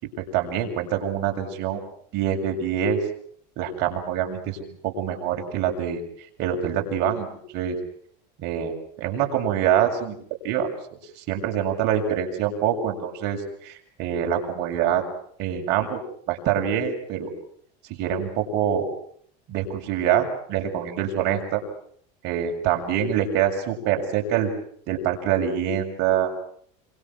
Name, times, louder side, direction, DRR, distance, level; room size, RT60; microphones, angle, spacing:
voice 1, 0.0-1.8 2.1-3.0 3.6-6.0 6.4-7.3 7.5-7.8 8.4-10.2 10.4-10.7 11.2-15.0 15.4-16.0 16.3-17.3 17.9-18.9 19.5-21.6 22.2-24.5 24.9-26.3, right 9 dB, 60° right, 2 dB, 7.2 m, -25 dB
29.0 x 27.0 x 6.4 m, 0.62 s
supercardioid pair, 125°, 21 cm